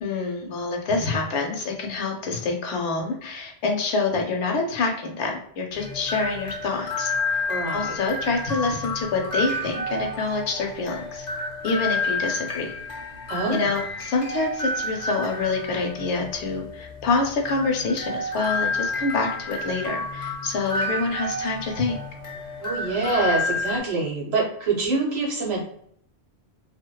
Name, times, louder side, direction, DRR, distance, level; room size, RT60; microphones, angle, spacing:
voice 1, 0.0-7.4 7.7-11.3 11.6-12.7 13.5-22.0, left 3 dB, 90° left, 2 dB, 0.9 m, -26 dB
sound 1, 5.7-23.8, left 2 dB, 45° left, 0.7 m, -30 dB
voice 2, 7.5-7.9 13.3-13.7 22.6-25.6, right 3 dB, 75° right, -3 dB, 1.2 m, -25 dB
2.6 x 2.1 x 2.2 m, 0.65 s
omnidirectional pair, 1.1 m